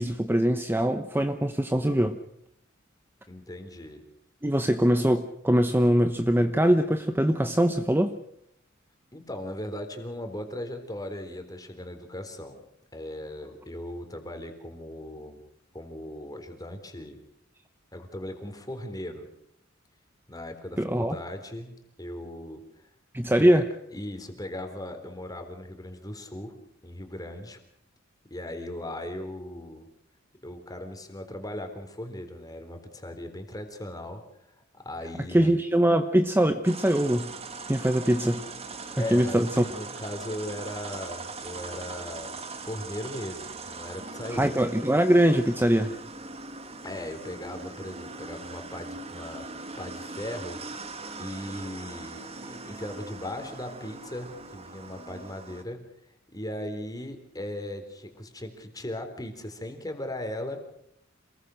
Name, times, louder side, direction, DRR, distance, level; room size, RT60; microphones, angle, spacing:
voice 1, 0.0-2.2 4.4-8.2 20.8-21.2 23.1-23.7 35.3-37.3 37.7-38.5 39.0-39.6 44.3-45.9, right 1 dB, 10° right, 8 dB, 1.0 m, -22 dB
voice 2, 3.3-4.0 9.1-12.7 12.9-15.4 15.7-17.2 17.9-19.3 20.3-21.7 22.0-22.9 23.4-23.6 23.9-26.5 26.8-27.6 28.3-29.9 30.4-34.2 34.7-35.5 39.0-44.6 46.8-49.5 49.8-50.8 51.2-55.8 56.3-60.6, left 1 dB, 20° left, 6 dB, 3.8 m, -38 dB
sound 1, 36.6-55.6, right 3 dB, 30° right, 2.2 m, -40 dB
27.5 x 20.5 x 6.5 m, 0.73 s
head